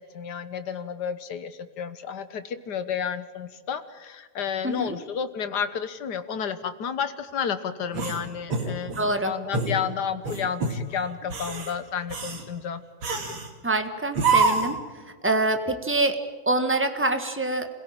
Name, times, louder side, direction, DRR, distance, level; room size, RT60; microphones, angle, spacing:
voice 1, 0.0-8.9 9.2-12.8, left 7 dB, 60° left, 11 dB, 1.8 m, -31 dB
voice 2, 4.6-5.0 8.9-9.3 13.6-14.8 15.2-17.7, right 2 dB, 5° right, 7 dB, 1.4 m, -25 dB
sound 1, 7.9-9.1 9.5-9.8 10.2-10.8 11.2-11.7 12.1-12.4 13.0-13.5 14.1-14.8, right 4 dB, 90° right, 3.1 m, -26 dB
27.0 x 17.0 x 9.0 m, 1.4 s
omnidirectional pair, 2.1 m